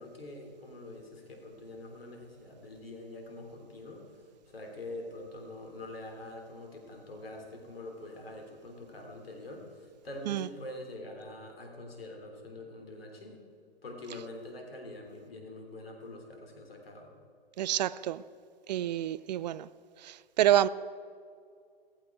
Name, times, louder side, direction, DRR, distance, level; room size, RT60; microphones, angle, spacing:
voice 1, 0.0-4.0 4.5-13.4 13.8-17.1, left 2 dB, 75° left, 3.4 m, -45 dB
voice 2, 17.6-18.2 18.7-19.7 20.0-20.7, right 12 dB, 45° right, 0.5 m, -28 dB
16.0 x 14.5 x 4.7 m
figure-of-eight pair, 115°, 29 cm